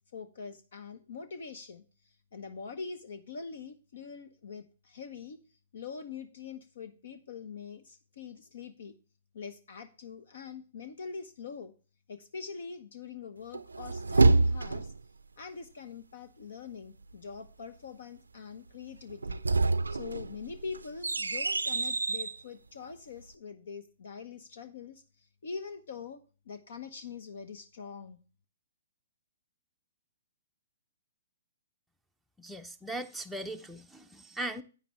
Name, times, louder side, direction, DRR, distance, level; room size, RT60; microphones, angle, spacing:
voice 1, 0.1-5.4 5.7-8.9 9.3-11.7 12.1-14.9 15.4-19.4 19.9-28.2, left 5 dB, 65° left, 1.0 m, -44 dB
sound 1, 13.5-15.0 19.1-22.4, right 3 dB, 85° right, 0.5 m, -27 dB
voice 2, 32.4-34.6, right 1 dB, ahead, 0.6 m, -39 dB
10.0 x 9.1 x 3.1 m
figure-of-eight pair, 125°, 0 cm